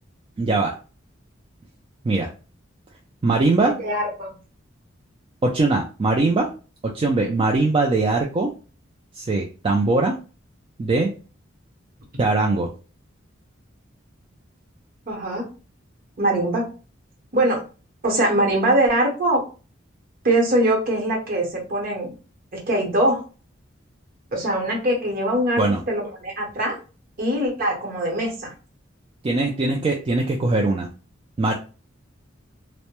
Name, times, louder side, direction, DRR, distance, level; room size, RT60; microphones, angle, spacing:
voice 1, 0.4-0.8 2.0-2.3 3.2-3.8 5.4-6.5 6.9-8.5 9.1-10.2 10.8-11.1 12.2-12.7 25.6-25.8 29.2-30.9 31.4-31.5, right 3 dB, 30° right, 0 dB, 0.3 m, -21 dB
voice 2, 3.8-4.4 15.1-15.5 16.2-16.7 17.3-17.6 18.0-19.4 20.2-22.1 22.5-23.2 24.3-26.8 27.2-28.5, right 1 dB, 50° right, 0 dB, 0.9 m, -22 dB
2.1 x 2.0 x 2.9 m, 0.34 s
head